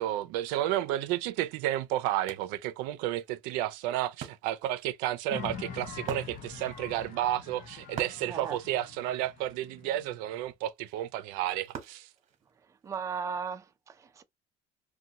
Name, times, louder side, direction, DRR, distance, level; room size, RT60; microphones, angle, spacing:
voice 1, 0.0-12.1, right 13 dB, 85° right, 0.5 m, -32 dB
Wood, 1.2-1.3 1.7-12.9, right 8 dB, 50° right, 0.9 m, -47 dB
sound 1, 5.3-10.5, left 7 dB, 60° left, 0.7 m, -44 dB
voice 2, 8.3-8.6 12.8-14.2, right 6 dB, 20° right, 0.4 m, -36 dB
2.6 x 2.2 x 2.8 m
cardioid pair, 120°, 15 cm